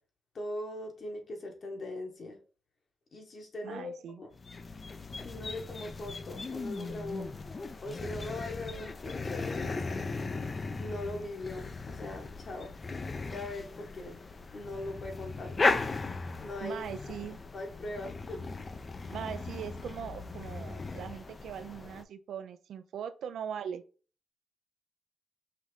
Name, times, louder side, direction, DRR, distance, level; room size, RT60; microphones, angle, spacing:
voice 1, 0.3-2.4 3.1-4.3 5.2-7.3 7.8-9.7 10.8-12.7 13.2-14.2 14.5-15.6 16.4-16.8 17.5-18.4, left 2 dB, 50° left, 1.2 m, -40 dB
voice 2, 3.6-4.2 16.6-17.4 19.1-23.8, right 8 dB, 75° right, 0.3 m, -40 dB
sound 1, 4.3-22.0, left 3 dB, 35° left, 0.4 m, -37 dB
5.5 x 2.6 x 3.1 m
cardioid pair, 85°, 0 cm